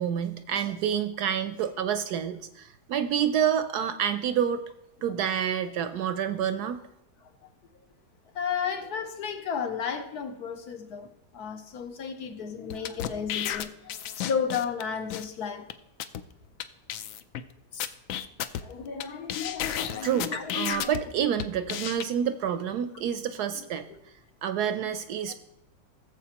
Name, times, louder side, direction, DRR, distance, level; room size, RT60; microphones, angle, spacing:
voice 1, 0.0-4.6 5.0-6.8 20.0-23.9 24.4-25.3, right 9 dB, 70° right, 1.0 m, -28 dB
voice 2, 8.3-15.7 17.7-17.9 18.6-20.9 25.3-25.4, left 7 dB, 65° left, 1.2 m, -33 dB
sound 1, 12.7-14.8 15.1-15.2 15.7-15.8 16.0-16.2 16.6-16.7 16.9-17.4 17.8-19.0 19.3-21.0 21.4-22.0, left 10 dB, 80° left, 0.7 m, -32 dB
17.0 x 7.5 x 2.9 m
omnidirectional pair, 2.0 m